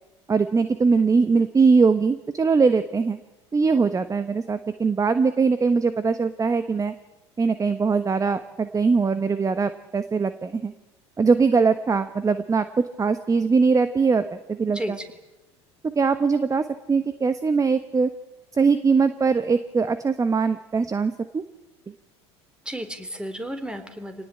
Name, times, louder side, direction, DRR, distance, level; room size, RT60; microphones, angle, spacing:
voice 1, 0.3-3.2 3.5-6.9 7.4-10.7 11.2-12.6 13.0-15.0 15.9-16.6 16.9-18.1 18.6-21.4, right 4 dB, 20° right, 11 dB, 1.3 m, -21 dB
voice 2, 14.7-15.1 22.7-24.3, equal, 5° right, 8 dB, 3.9 m, -33 dB
26.5 x 18.5 x 8.7 m, 1.0 s
hypercardioid pair, 70°, 15 cm